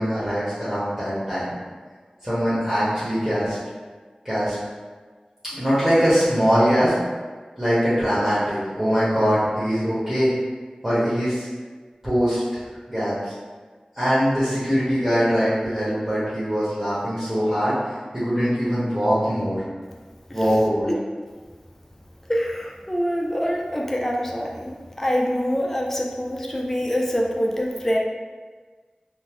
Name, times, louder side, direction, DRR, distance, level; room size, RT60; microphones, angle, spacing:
voice 1, 0.0-1.5 2.2-3.6 4.2-4.6 5.5-6.9 7.6-10.3 10.8-11.5 12.0-12.6 12.9-13.3 13.9-17.8 18.1-19.6 20.3-20.9, equal, 15° right, -11 dB, 1.0 m, -22 dB
voice 2, 22.3-28.0, equal, 15° left, -2 dB, 0.4 m, -25 dB
3.6 x 2.0 x 3.0 m, 1.4 s
wide cardioid pair, 55°, 2 cm